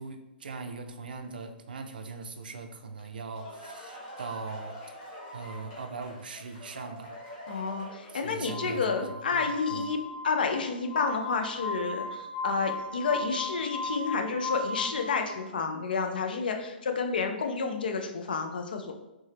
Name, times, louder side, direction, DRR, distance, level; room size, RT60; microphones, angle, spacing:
voice 1, 0.0-4.8 5.3-7.2 8.1-9.9, right 4 dB, 60° right, 6 dB, 0.4 m, -40 dB
sound 1, 3.0-8.4, left 1 dB, 35° left, 1.0 m, -45 dB
voice 2, 7.5-18.9, left 4 dB, 60° left, 5 dB, 0.4 m, -30 dB
Glass, 8.4-15.2, left 2 dB, 80° left, 1.3 m, -36 dB
3.3 x 2.7 x 3.3 m, 0.99 s
figure-of-eight pair, 115°, 6 cm